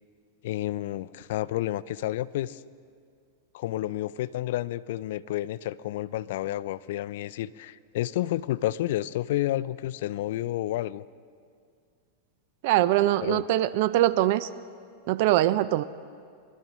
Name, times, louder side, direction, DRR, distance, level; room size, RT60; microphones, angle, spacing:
voice 1, 0.4-2.6 3.5-11.0 13.2-13.4, left 14 dB, 70° left, 16 dB, 0.4 m, -30 dB
voice 2, 12.6-14.5 15.1-15.8, right 14 dB, 60° right, 16 dB, 0.4 m, -22 dB
25.0 x 12.0 x 3.1 m, 2.2 s
hypercardioid pair, 120°, 0 cm